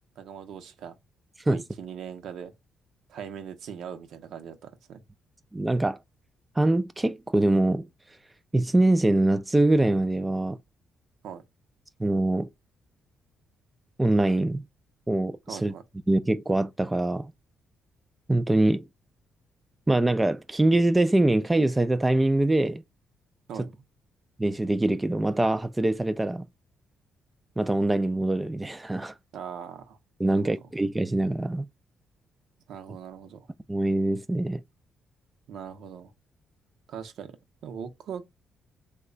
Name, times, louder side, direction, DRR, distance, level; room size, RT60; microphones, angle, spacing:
voice 1, 0.2-0.9 1.5-2.5 3.1-5.0 11.2-11.4 15.5-15.8 23.5-23.7 29.3-30.0 30.3-30.5 32.7-33.5 35.5-36.1 36.9-37.3 37.6-38.3, right 7 dB, 75° right, 0.7 m, -40 dB
voice 2, 5.5-6.0 6.6-7.9 8.5-10.6 12.0-12.5 14.0-14.6 15.1-15.7 16.1-17.3 18.3-18.8 19.9-22.8 23.6-23.7 24.4-26.5 27.6-29.1 30.2-31.7 33.7-34.6, right 2 dB, 15° right, 0.3 m, -23 dB
3.1 x 2.2 x 3.8 m
cardioid pair, 90°, 0 cm